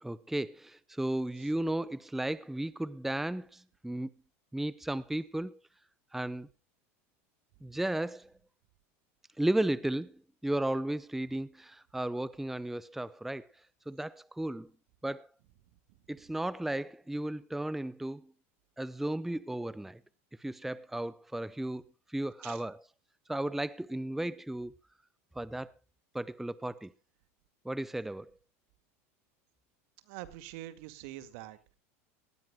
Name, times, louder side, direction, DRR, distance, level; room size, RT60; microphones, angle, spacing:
voice 1, 0.0-4.1 4.5-5.6 6.1-6.5 7.6-8.3 9.4-10.1 10.4-13.5 13.9-14.7 15.0-15.3 16.1-18.3 18.8-20.0 20.4-21.8 22.1-22.8 23.3-24.8 25.4-25.7 26.1-26.9 27.6-28.3, right 1 dB, 5° right, 0.6 m, -34 dB
voice 2, 30.0-31.7, right 14 dB, 70° right, 2.0 m, -45 dB
19.0 x 16.0 x 2.2 m
supercardioid pair, 110°, 7 cm